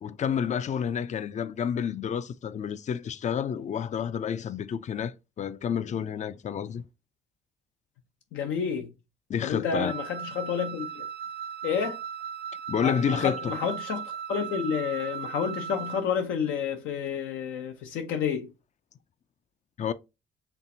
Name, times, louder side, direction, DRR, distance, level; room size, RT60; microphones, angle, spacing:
voice 1, 0.0-6.8 9.3-9.9 12.7-13.5 19.8-19.9, left 8 dB, 35° left, 0.4 m, -29 dB
voice 2, 8.3-8.9 9.4-11.1 11.6-12.0 12.8-18.5, left 7 dB, 85° left, 0.7 m, -30 dB
Wind instrument woodwind instrument, 9.9-16.1, right 8 dB, 55° right, 0.7 m, -37 dB
4.4 x 3.3 x 2.7 m
cardioid pair, 90°, 20 cm